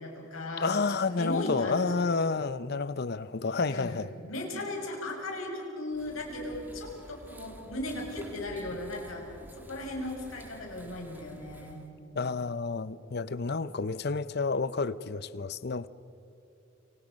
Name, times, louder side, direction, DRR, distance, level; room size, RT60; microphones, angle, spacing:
voice 1, 0.0-2.1 3.7-9.2 9.6-11.8, left 1 dB, 85° left, 6.7 m, -37 dB
voice 2, 0.6-4.1 12.1-15.9, left 4 dB, 50° left, 0.7 m, -30 dB
sound 1, 5.9-11.9, equal, 10° right, 2.0 m, -50 dB
29.5 x 27.5 x 5.3 m
head